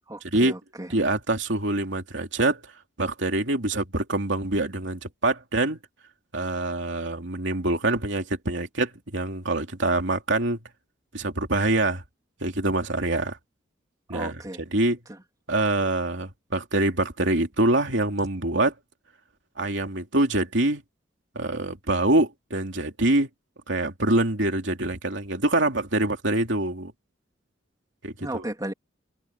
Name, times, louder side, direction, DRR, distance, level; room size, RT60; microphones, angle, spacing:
voice 1, 0.1-0.9 14.1-14.6 15.1-15.2 28.2-28.7, right 1 dB, 20° right, 3.4 m, -35 dB
voice 2, 0.9-2.7 3.0-5.8 6.3-10.6 11.1-12.0 12.4-13.4 14.1-14.4 14.7-15.0 15.5-18.7 19.6-20.8 21.3-23.3 23.7-26.9 28.0-28.4, right 2 dB, 70° right, 3.2 m, -25 dB
head